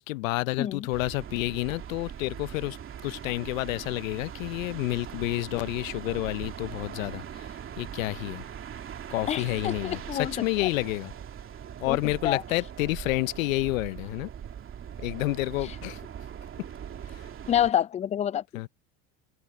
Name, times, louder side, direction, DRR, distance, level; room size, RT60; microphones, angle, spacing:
voice 1, 0.0-2.8 3.0-7.5 7.8-8.4 9.1-11.1 11.8-14.3 15.0-16.0 17.1-17.2 18.5-18.7, left 20 dB, 80° left, 0.8 m, -29 dB
sound 1, 0.9-17.7, right 9 dB, 30° right, 2.6 m, -41 dB
voice 2, 9.3-10.3 10.6-10.7 11.9-12.0 12.2-12.4 17.5-18.4, left 10 dB, 20° left, 0.3 m, -27 dB
open air
supercardioid pair, 105°, 39 cm